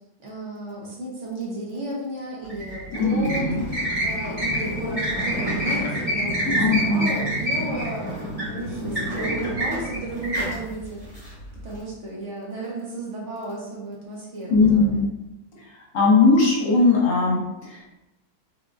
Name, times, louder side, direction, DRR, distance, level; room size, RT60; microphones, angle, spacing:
voice 1, 0.2-11.3 11.6-15.1, right 2 dB, 55° right, -4 dB, 1.1 m, -33 dB
sound 1, 2.4-11.8, equal, 25° right, 1.6 m, -27 dB
voice 2, 2.9-3.6 6.5-7.1 14.5-15.1 15.9-18.0, left 3 dB, 60° left, -3 dB, 1.1 m, -19 dB
3.7 x 3.6 x 2.4 m, 0.94 s
omnidirectional pair, 1.6 m